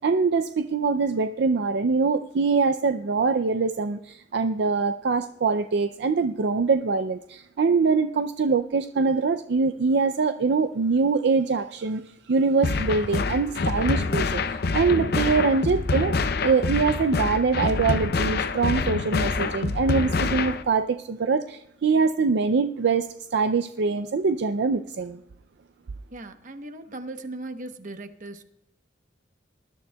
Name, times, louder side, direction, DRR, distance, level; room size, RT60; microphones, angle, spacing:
voice 1, 0.0-12.0 12.3-16.2 16.4-25.2, right 4 dB, 60° right, 9 dB, 0.4 m, -23 dB
sound 1, 12.6-20.6, left 3 dB, 55° left, 0.6 m, -26 dB
voice 2, 26.1-28.4, right 2 dB, 45° right, 8 dB, 0.9 m, -38 dB
20.0 x 12.0 x 2.3 m, 0.79 s
head